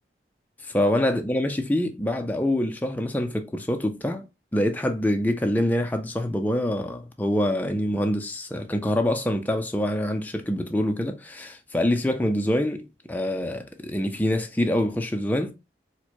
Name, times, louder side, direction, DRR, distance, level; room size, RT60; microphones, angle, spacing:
voice 1, 0.6-4.2 4.5-15.5, left 1 dB, 10° left, 0.4 m, -25 dB
4.3 x 2.1 x 2.9 m
head